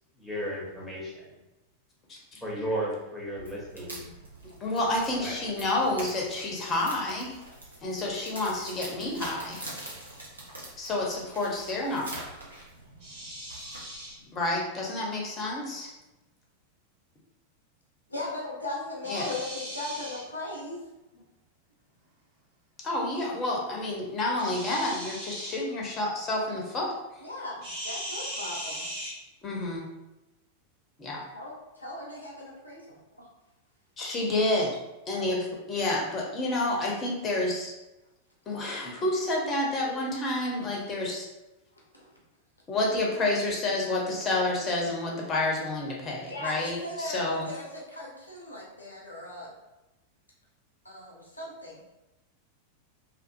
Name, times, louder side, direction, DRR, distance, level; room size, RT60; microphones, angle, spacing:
voice 1, 0.2-1.2 2.4-4.1 5.2-5.3, right 1 dB, ahead, -5 dB, 0.9 m, -34 dB
sound 1, 3.3-14.1, right 1 dB, 80° right, 0.7 m, -45 dB
voice 2, 4.6-7.4 7.8-9.7 10.8-12.2 14.3-15.9 19.1-19.3 22.8-26.9 29.4-29.9 31.0-31.2 34.0-34.7 35.1-37.7 38.5-41.3 42.7-47.5, left 2 dB, 25° left, -2 dB, 0.7 m, -29 dB
sound 2, 13.0-14.2 19.0-20.2 24.4-25.6 27.6-29.1, equal, 50° right, 1.2 m, -38 dB
voice 3, 18.1-20.8 27.2-28.9 31.3-33.3 35.1-35.4 41.9-42.1 46.3-49.5 50.8-51.8, left 2 dB, 85° left, -3 dB, 0.6 m, -38 dB
2.5 x 2.4 x 2.5 m, 1.0 s
figure-of-eight pair, 90°, 0 cm